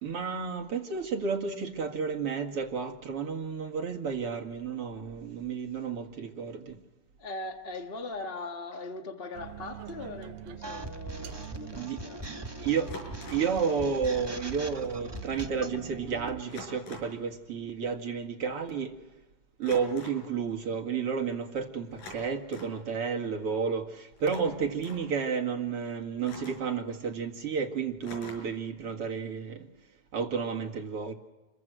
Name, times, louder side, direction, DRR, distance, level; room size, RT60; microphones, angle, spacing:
voice 1, 0.0-6.7 11.8-12.0 12.6-12.9 13.3-18.9 19.6-23.9 24.2-29.6 30.1-31.1, right 6 dB, 45° right, 2.7 m, -31 dB
voice 2, 7.2-12.3, left 2 dB, 30° left, 1.1 m, -40 dB
sound 1, 9.3-16.4, right 13 dB, 85° right, 2.6 m, -45 dB
sound 2, 10.6-15.8, equal, 15° right, 0.8 m, -41 dB
sound 3, 10.8-11.0 12.9-13.6 14.9-15.0 15.3-15.5 16.5-17.2 19.6-20.3 21.9-22.8 24.2-25.1 26.2-26.8 28.0-28.6, left 2 dB, 85° left, 7.7 m, -46 dB
29.0 x 23.0 x 6.3 m
omnidirectional pair, 3.8 m